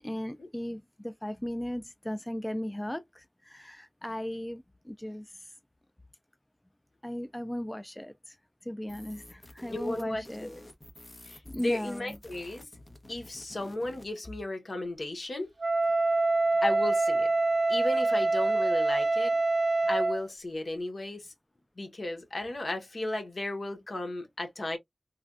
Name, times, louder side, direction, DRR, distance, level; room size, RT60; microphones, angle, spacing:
voice 1, 0.0-5.5 7.0-8.4 8.6-10.5 11.5-12.2, equal, 15° left, 0.3 m, -37 dB
sound 1, 8.9-14.1, left 1 dB, 35° left, 0.9 m, -51 dB
voice 2, 9.6-10.6 11.2-12.7 13.1-15.5 16.6-17.3 17.7-19.4 19.9-21.3 21.8-24.8, left 2 dB, 75° left, 1.0 m, -34 dB
Wind instrument woodwind instrument, 15.6-20.2, right 3 dB, 80° right, 0.3 m, -25 dB
3.3 x 2.3 x 2.4 m
wide cardioid pair, 60°, 0 cm